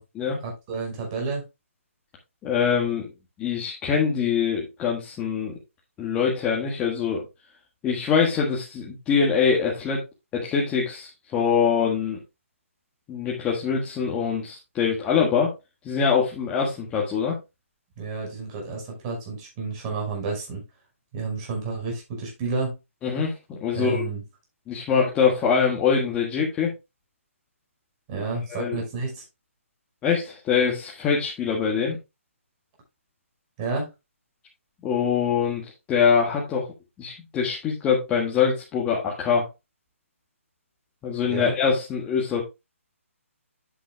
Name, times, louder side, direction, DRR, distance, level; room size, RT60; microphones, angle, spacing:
voice 1, 0.4-1.4 18.0-20.6 21.1-22.8 23.7-24.2 28.1-29.2 33.6-33.9 41.2-41.5, right 4 dB, 25° right, 0 dB, 5.4 m, -30 dB
voice 2, 2.4-3.1 3.4-5.5 6.0-7.2 7.8-10.0 10.3-12.2 13.1-15.5 15.8-17.4 23.0-24.0 24.7-26.7 28.5-28.8 30.0-32.0 34.8-36.7 37.0-39.5 41.0-42.4, left 6 dB, 15° left, -3 dB, 1.7 m, -24 dB
10.0 x 8.7 x 2.3 m, 0.24 s
figure-of-eight pair, 150°, 8 cm